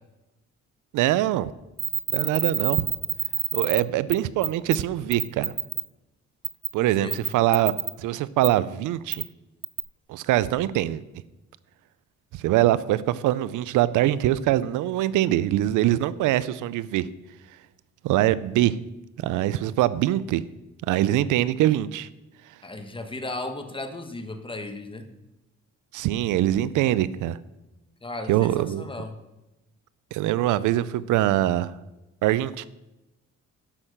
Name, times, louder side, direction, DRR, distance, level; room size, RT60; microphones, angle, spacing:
voice 1, 0.9-1.5 2.1-2.9 3.5-5.5 6.7-7.7 8.0-9.2 10.1-11.0 12.3-17.1 18.0-18.8 19.2-20.4 20.9-22.1 25.9-27.4 28.3-28.9 30.1-31.7 32.2-32.7, right 14 dB, 90° right, 18 dB, 0.5 m, -23 dB
sound 1, 1.8-3.8 4.1-4.2 4.4-4.8 5.1-5.8 6.4-6.7 7.1-7.9 8.4-8.5 9.1-9.2 9.6-9.8, right 8 dB, 35° right, 0.8 m, -26 dB
voice 2, 6.8-7.3 22.6-25.1 28.0-29.1, left 2 dB, 15° left, 6 dB, 1.5 m, -35 dB
11.5 x 6.3 x 6.6 m, 0.98 s
cardioid pair, 90°, 30 cm